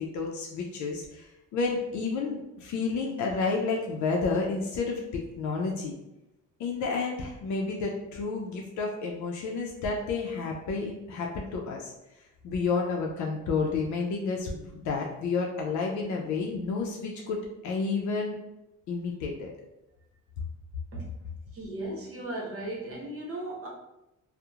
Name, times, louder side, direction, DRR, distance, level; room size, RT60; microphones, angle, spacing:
voice 1, 0.0-5.9 6.6-11.9 12.4-17.4 17.6-18.4 18.9-19.5, left 4 dB, 70° left, 0 dB, 0.5 m, -30 dB
voice 2, 21.5-23.7, right 1 dB, 50° right, -3 dB, 0.9 m, -36 dB
2.8 x 2.0 x 2.3 m, 0.92 s
cardioid pair, 90°, 30 cm